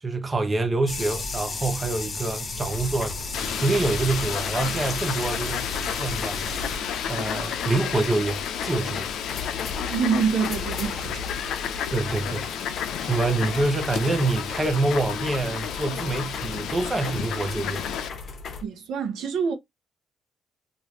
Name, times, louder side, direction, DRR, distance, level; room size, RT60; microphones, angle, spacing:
voice 1, 0.0-3.1 3.6-5.6 6.0-6.4 7.1-9.1 11.9-17.8, right 2 dB, 25° right, 0.8 m, -26 dB
sound 1, 0.9-6.8, left 3 dB, 40° left, 0.9 m, -34 dB
sound 2, 2.7-18.6, left 5 dB, 55° left, 0.8 m, -37 dB
Fowl, 3.3-18.1, left 9 dB, 80° left, 0.5 m, -32 dB
voice 2, 9.9-11.3 18.6-19.5, right 6 dB, 85° right, 0.8 m, -26 dB
3.2 x 2.6 x 3.0 m
cardioid pair, 90°, 0 cm